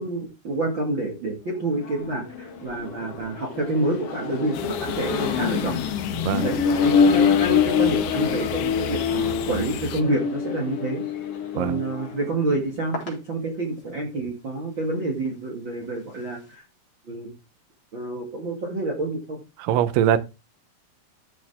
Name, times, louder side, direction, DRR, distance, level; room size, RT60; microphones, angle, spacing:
voice 1, 0.0-5.8 6.4-6.6 6.8-11.0 11.5-16.6 17.0-17.3 17.9-19.4, right 2 dB, 40° right, 2.1 m, -28 dB
Accelerating revving vroom, 1.7-12.2, left 6 dB, 50° left, 2.0 m, -25 dB
sound 1, 4.5-10.0, left 9 dB, 80° left, 2.9 m, -34 dB
sound 2, 11.5-16.6, left 2 dB, 35° left, 4.2 m, -44 dB
voice 2, 19.6-20.2, right 10 dB, 75° right, 2.3 m, -21 dB
13.5 x 6.5 x 3.6 m
omnidirectional pair, 4.4 m